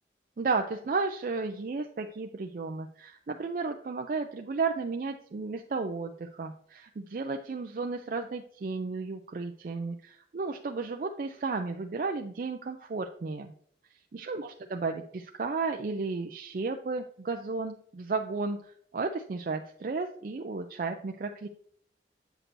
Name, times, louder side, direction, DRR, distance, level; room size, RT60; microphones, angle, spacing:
voice 1, 0.4-13.5 14.1-21.5, right 4 dB, 50° right, 4 dB, 0.4 m, -33 dB
7.9 x 6.0 x 2.6 m, 0.63 s
head